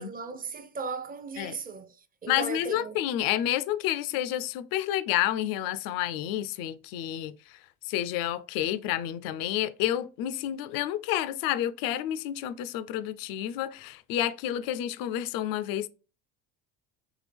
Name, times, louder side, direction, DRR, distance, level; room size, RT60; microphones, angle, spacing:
voice 1, 0.0-1.9 2.2-3.0, right 5 dB, 25° right, 0.5 m, -37 dB
voice 2, 2.3-7.6 7.8-15.9, left 12 dB, 65° left, 0.5 m, -30 dB
3.6 x 3.3 x 3.3 m
supercardioid pair, 90°, 37 cm